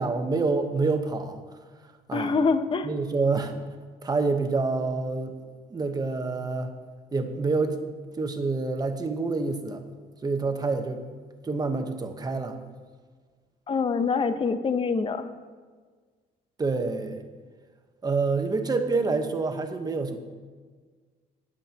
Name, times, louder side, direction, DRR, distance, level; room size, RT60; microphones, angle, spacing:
voice 1, 0.0-1.4 2.1-2.4 2.8-3.5 4.0-5.4 5.7-6.7 7.1-7.8 8.2-9.8 10.2-11.0 11.4-12.6 16.6-17.2 18.0-20.2, right 3 dB, 25° right, 6 dB, 1.0 m, -27 dB
voice 2, 2.1-2.9 13.7-15.3, left 4 dB, 30° left, 10 dB, 0.8 m, -25 dB
18.5 x 7.5 x 2.9 m, 1.5 s
cardioid pair, 110°, 17 cm